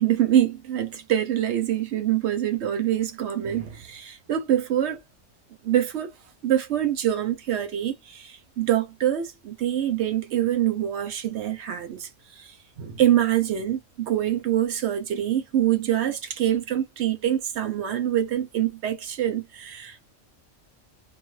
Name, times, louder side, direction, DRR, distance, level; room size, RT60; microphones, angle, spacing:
voice 1, 0.0-5.0 5.6-6.1 6.4-12.5 12.8-20.1, right 11 dB, 60° right, 0.8 m, -25 dB
2.3 x 2.2 x 3.1 m
omnidirectional pair, 1.5 m